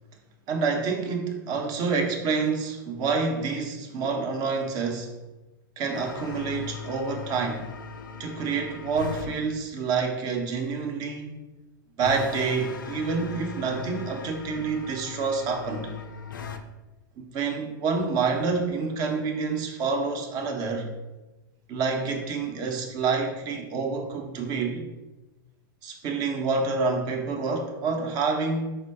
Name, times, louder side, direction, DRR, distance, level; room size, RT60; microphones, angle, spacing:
voice 1, 0.5-5.1 5.8-7.7 8.2-11.3 12.0-15.9 17.2-20.9 21.7-24.8 25.8-28.8, right 4 dB, 35° right, 3 dB, 0.7 m, -28 dB
sound 1, 5.9-9.3 12.0-16.6, left 6 dB, 65° left, 0.4 m, -39 dB
4.5 x 2.2 x 4.6 m, 1.1 s
figure-of-eight pair, 95°, 11 cm